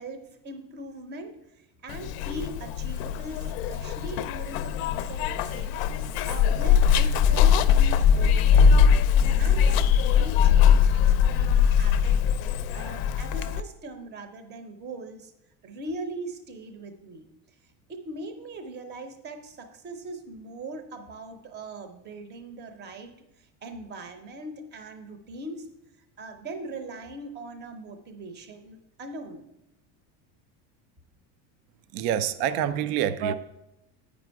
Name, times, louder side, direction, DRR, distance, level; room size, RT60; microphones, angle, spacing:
voice 1, 0.0-5.8 6.1-9.0 9.4-15.3 15.6-17.3 17.9-25.7 26.2-29.4, right 2 dB, 25° right, 0.7 m, -40 dB
Zipper (clothing), 1.9-13.6, left 7 dB, 55° left, 0.5 m, -21 dB
voice 2, 31.9-33.3, right 9 dB, 60° right, 0.5 m, -26 dB
8.4 x 5.3 x 4.6 m
cardioid pair, 155°, 43 cm